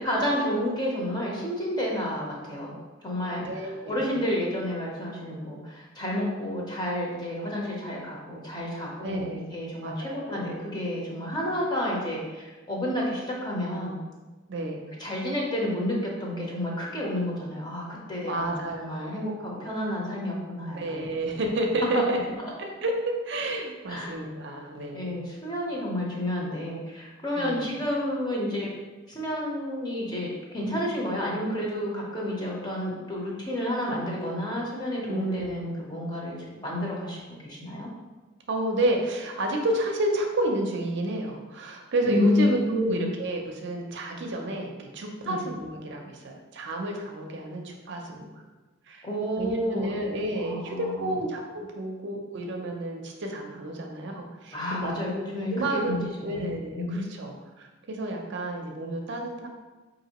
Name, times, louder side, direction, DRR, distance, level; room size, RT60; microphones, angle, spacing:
voice 1, 0.0-2.7 3.0-14.0 15.0-21.1 23.9-24.1 24.9-28.7 29.1-37.9 42.0-43.1 45.2-45.4 49.0-49.9 50.4-51.1 54.5-56.5 56.7-57.0, left 1 dB, 20° left, -4 dB, 0.8 m, -30 dB
voice 2, 3.4-4.1 9.0-9.5 9.8-10.6 14.5-14.9 18.3-19.3 20.7-25.3 27.4-27.6 35.1-35.5 38.5-48.3 48.9-49.1 49.4-55.0 55.5-56.0 56.2-59.5, right 1 dB, 60° right, 2 dB, 0.5 m, -30 dB
4.9 x 2.6 x 2.9 m, 1.2 s
head